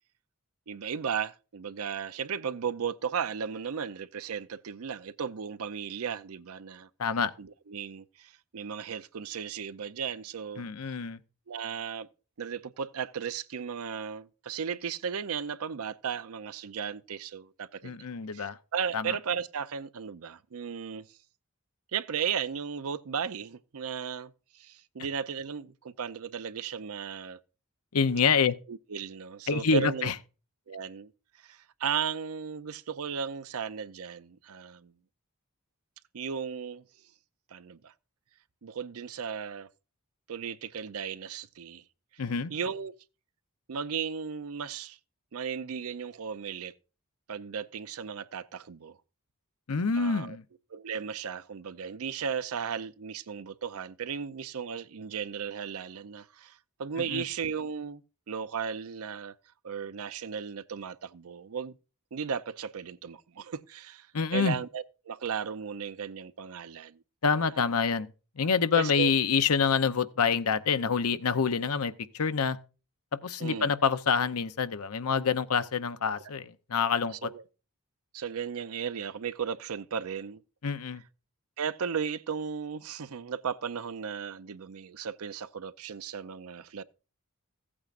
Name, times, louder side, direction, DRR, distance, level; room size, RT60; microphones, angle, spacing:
voice 1, 0.7-6.9 7.4-10.6 11.5-12.1 12.4-18.0 18.3-21.1 21.9-27.4 28.7-30.1 30.7-31.1 31.4-34.9 36.1-36.8 37.5-37.9 38.6-39.7 40.3-41.8 42.5-42.9 43.7-45.0 45.3-46.7 47.3-49.0 49.9-50.4 50.7-58.0 58.3-59.3 59.6-61.8 62.1-64.1 64.3-67.0 68.7-69.1 73.4-73.7 77.2-77.4 78.1-80.4 81.6-86.8, right 7 dB, 75° right, 0.6 m, -35 dB
voice 2, 7.0-7.3 10.6-11.2 17.8-18.6 18.9-19.2 27.9-28.6 29.5-30.1 42.2-42.5 49.7-50.4 57.1-57.2 64.1-64.6 67.2-68.1 68.4-72.6 73.2-77.3 80.6-81.0, left 5 dB, 80° left, 0.7 m, -27 dB
15.5 x 8.6 x 2.5 m
head